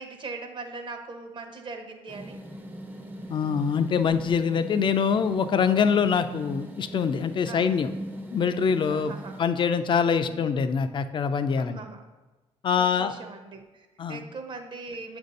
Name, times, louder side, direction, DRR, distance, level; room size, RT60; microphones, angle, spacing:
voice 1, 0.0-2.4 7.5-7.7 8.9-9.4 10.3-10.6 11.6-12.0 12.8-15.2, right 3 dB, 45° right, 5 dB, 0.8 m, -40 dB
sound 1, 2.1-9.4, right 1 dB, 15° right, 0.5 m, -40 dB
voice 2, 3.3-7.9 8.3-9.1 9.4-11.8 12.6-13.1 14.0-14.2, left 6 dB, 45° left, 11 dB, 0.4 m, -24 dB
7.4 x 2.6 x 5.2 m, 1.1 s
cardioid pair, 105°, 11 cm